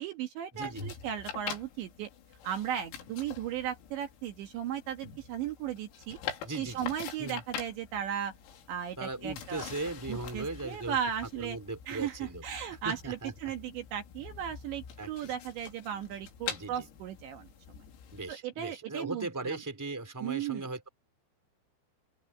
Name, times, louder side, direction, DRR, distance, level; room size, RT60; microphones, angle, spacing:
voice 1, 0.0-2.1 2.4-6.2 6.6-8.3 8.7-9.6 10.1-11.6 11.9-17.5 18.3-19.6 20.2-20.6, right 9 dB, 65° right, 3.6 m, -36 dB
voice 2, 0.5-0.9 6.4-6.9 7.2-7.4 9.0-11.0 11.3-12.4 12.7-13.5 15.0-15.3 16.5-16.9 18.1-20.9, right 2 dB, 5° right, 3.4 m, -38 dB
sound 1, 0.6-18.3, left 8 dB, 85° left, 6.0 m, -45 dB
open air
omnidirectional pair, 6.0 m